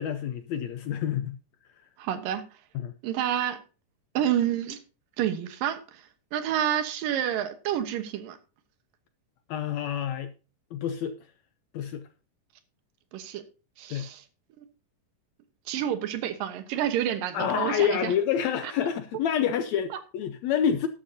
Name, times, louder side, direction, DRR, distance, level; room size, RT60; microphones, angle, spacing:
voice 1, 0.0-1.4 2.7-2.9 9.5-10.3 10.7-11.1 11.7-12.0 13.9-14.1 17.3-20.9, left 8 dB, 75° left, 1.6 m, -28 dB
voice 2, 2.0-2.5 3.0-3.6 4.1-4.8 5.2-6.0 6.3-8.4 13.1-13.4 13.8-14.2 14.6-14.7 15.7-18.1 18.6-18.7, right 10 dB, 85° right, 2.9 m, -29 dB
13.0 x 11.5 x 2.8 m
omnidirectional pair, 3.9 m